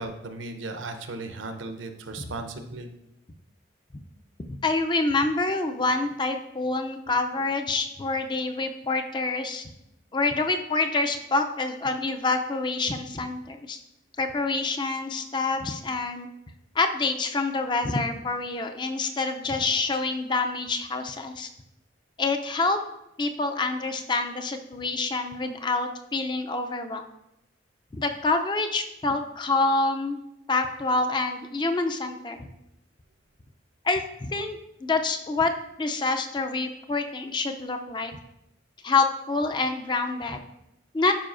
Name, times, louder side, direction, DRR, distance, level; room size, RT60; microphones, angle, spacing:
voice 1, 0.0-2.9, right 3 dB, 80° right, 6 dB, 0.7 m, -36 dB
voice 2, 4.6-9.7 10.1-13.8 14.2-16.3 16.7-21.5 22.2-22.8 23.2-27.0 27.9-30.2 30.5-32.5 33.8-35.5 35.8-38.2 38.8-40.4 40.9-41.1, left 3 dB, 25° left, 6 dB, 0.4 m, -27 dB
11.5 x 4.7 x 2.5 m, 0.85 s
head